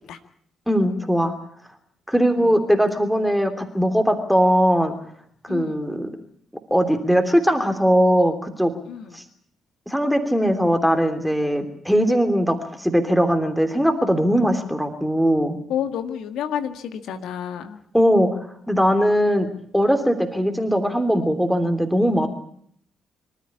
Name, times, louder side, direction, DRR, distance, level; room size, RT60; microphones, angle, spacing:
voice 1, 0.7-1.3 2.1-4.9 5.4-6.1 6.7-8.7 9.1-9.2 9.9-15.6 17.9-18.4 18.7-19.5 19.7-22.3, equal, ahead, 6 dB, 3.2 m, -20 dB
voice 2, 5.5-5.8 8.9-9.3 15.7-17.8, left 9 dB, 65° left, 8 dB, 1.8 m, -30 dB
25.5 x 13.5 x 9.9 m, 0.65 s
hypercardioid pair, 45°, 0 cm